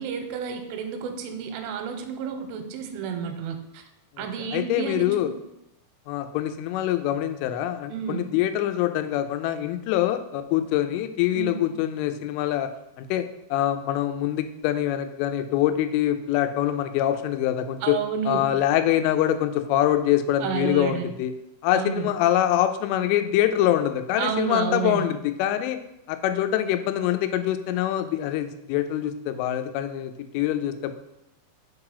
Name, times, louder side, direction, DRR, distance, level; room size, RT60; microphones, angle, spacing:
voice 1, 0.0-3.8 4.2-5.3 7.9-8.3 11.3-11.7 17.8-18.5 20.4-21.1 21.7-22.1 24.2-25.1, right 7 dB, 85° right, 6 dB, 3.1 m, -30 dB
voice 2, 4.5-5.3 6.1-12.7 13.0-18.0 18.3-21.3 21.6-25.8 26.1-30.9, left 12 dB, 90° left, 8 dB, 3.1 m, -24 dB
6.6 x 3.7 x 4.8 m, 0.86 s
omnidirectional pair, 5.6 m